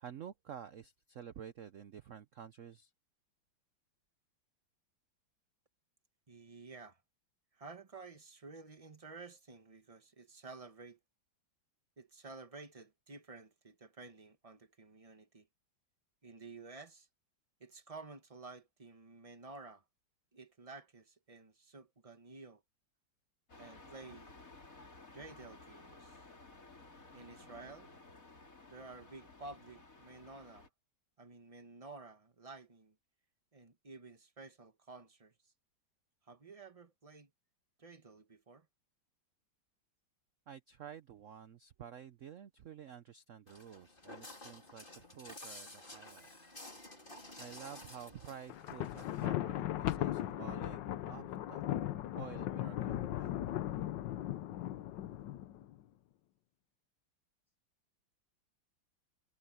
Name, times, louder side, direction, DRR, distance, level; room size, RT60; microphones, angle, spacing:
voice 1, 0.0-2.9 40.5-46.3 47.4-50.8 51.1-51.6 51.9-53.3, right 8 dB, 70° right, 0.7 m, -50 dB
voice 2, 6.3-7.0 7.5-11.0 12.0-15.5 16.2-17.1 17.6-19.8 20.3-22.6 23.6-24.4 25.1-26.2 27.1-27.9 28.7-30.7 31.2-32.9 33.5-35.3 36.3-37.3 37.8-38.7, right 3 dB, 20° right, 1.1 m, -52 dB
sound 1, 23.5-30.7, left 3 dB, 40° left, 3.8 m, -56 dB
Walk footsteps, 43.5-49.3, left 1 dB, 25° left, 4.6 m, -52 dB
Thunder, 48.5-55.7, left 13 dB, 70° left, 1.4 m, -37 dB
omnidirectional pair, 2.2 m